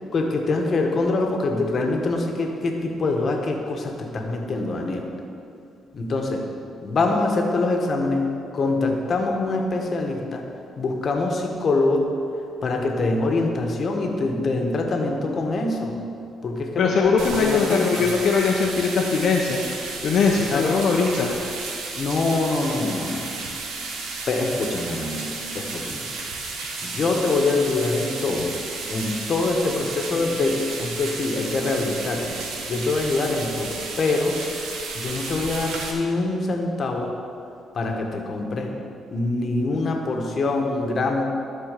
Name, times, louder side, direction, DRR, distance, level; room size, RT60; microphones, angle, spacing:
voice 1, 0.1-5.1 5.9-6.4 6.8-10.4 10.8-12.1 12.6-16.0 16.4-17.2 17.4-18.1 20.5-20.7 22.0-23.4 24.3-26.1 26.8-28.6 28.9-32.3 32.7-34.4 34.9-37.1 37.7-38.7 39.1-41.2, left 3 dB, 50° left, 2 dB, 1.4 m, -24 dB
voice 2, 16.8-19.6 20.0-21.3, left 5 dB, 65° left, -2 dB, 0.9 m, -21 dB
sound 1, 17.2-35.9, right 3 dB, 90° right, 1.3 m, -33 dB
12.5 x 4.4 x 6.7 m, 2.6 s
cardioid pair, 90°, 0 cm